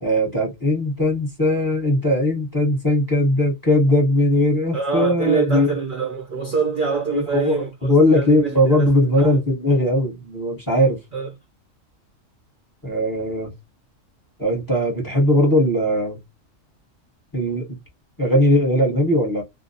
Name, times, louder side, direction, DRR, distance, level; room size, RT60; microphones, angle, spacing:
voice 1, 0.0-5.7 7.1-11.0 12.8-13.5 14.4-16.2 17.3-17.8 18.2-19.4, left 1 dB, 20° left, 0.9 m, -19 dB
voice 2, 4.7-9.3 11.1-11.3, right 5 dB, 55° right, 0.6 m, -25 dB
2.2 x 2.1 x 2.6 m
omnidirectional pair, 1.4 m